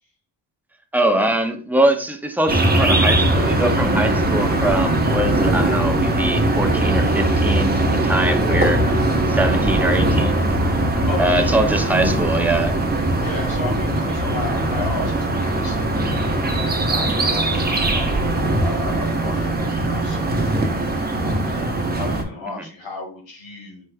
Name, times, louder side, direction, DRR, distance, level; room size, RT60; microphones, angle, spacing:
voice 1, 0.9-9.0 9.3-10.4 11.2-12.8 22.6-22.7, right 1 dB, 5° right, 4 dB, 0.4 m, -22 dB
sound 1, 2.5-22.2, right 1 dB, 20° right, 0.8 m, -20 dB
voice 2, 11.1-11.5 13.2-15.8 16.4-23.9, left 3 dB, 90° left, 0 dB, 1.8 m, -34 dB
4.8 x 4.4 x 2.2 m, 0.41 s
wide cardioid pair, 160°, 44 cm